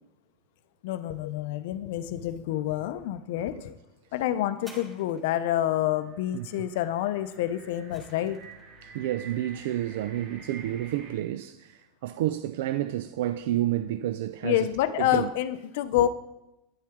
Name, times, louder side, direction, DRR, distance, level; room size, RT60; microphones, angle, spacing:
voice 1, 0.8-3.8 4.1-8.4 14.4-16.1, left 12 dB, 65° left, 0.5 m, -28 dB
sound 1, 4.6-5.6 7.3-8.7 9.5-9.6, right 1 dB, 10° right, 1.4 m, -51 dB
sound 2, 5.5-11.1, right 4 dB, 50° right, 2.0 m, -49 dB
voice 2, 6.3-6.7 8.8-14.7 15.0-15.3, right 13 dB, 75° right, 0.3 m, -30 dB
9.6 x 7.5 x 3.6 m
supercardioid pair, 155°, 0 cm